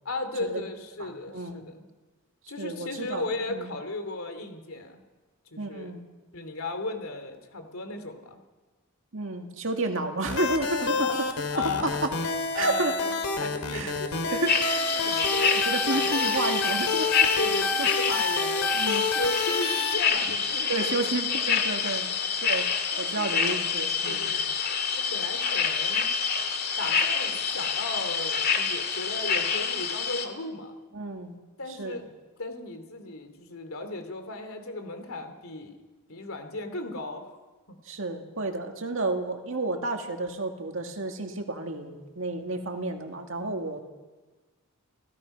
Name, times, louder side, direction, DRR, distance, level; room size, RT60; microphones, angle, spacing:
voice 1, 0.0-1.9 2.5-5.0 5.5-5.9 6.3-8.4 10.8-12.0 12.5-16.3 17.4-21.0 22.9-23.4 24.0-24.4 24.9-26.1 26.8-30.7 31.6-32.1 32.4-35.8 36.1-37.4 37.7-37.8, left 2 dB, 70° left, 7 dB, 2.7 m, -36 dB
voice 2, 1.0-1.6 2.6-3.7 5.6-6.0 9.1-11.1 11.8-11.9 12.5-12.9 13.7-13.9 14.3-14.9 15.7-17.3 17.8-17.9 18.7-19.1 20.7-22.1 22.4-24.3 30.9-31.4 31.8-32.0 37.9-43.8, right 2 dB, 60° right, 3 dB, 2.2 m, -31 dB
sound 1, 10.3-20.0, left 3 dB, 90° left, 2.5 m, -29 dB
sound 2, 14.5-30.3, left 6 dB, 45° left, 1.9 m, -27 dB
29.0 x 16.5 x 5.5 m, 1.3 s
head